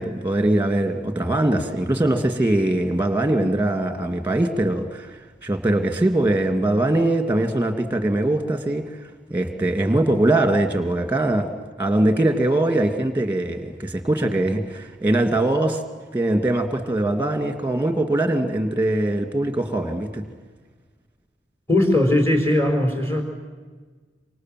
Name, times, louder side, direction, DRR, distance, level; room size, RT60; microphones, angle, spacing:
voice 1, 0.0-8.8 9.3-11.5 11.8-15.8 16.1-20.2, right 1 dB, 10° right, 7 dB, 2.5 m, -22 dB
voice 2, 21.7-23.2, left 1 dB, 15° left, 3 dB, 4.6 m, -19 dB
27.5 x 25.5 x 7.8 m, 1.4 s
head